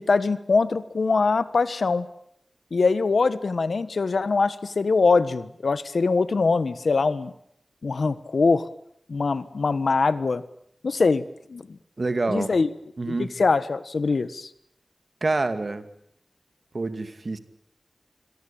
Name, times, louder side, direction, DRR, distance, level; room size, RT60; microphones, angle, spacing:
voice 1, 0.0-2.1 2.7-7.3 7.8-8.7 9.1-10.4 10.8-11.8 12.3-12.7 13.1-14.5, left 4 dB, 85° left, 14 dB, 1.4 m, -23 dB
voice 2, 12.0-12.5 13.0-13.3 15.2-15.9 16.7-17.4, right 3 dB, 60° right, 10 dB, 2.4 m, -26 dB
27.0 x 22.0 x 8.8 m, 0.74 s
cardioid pair, 45°, 0 cm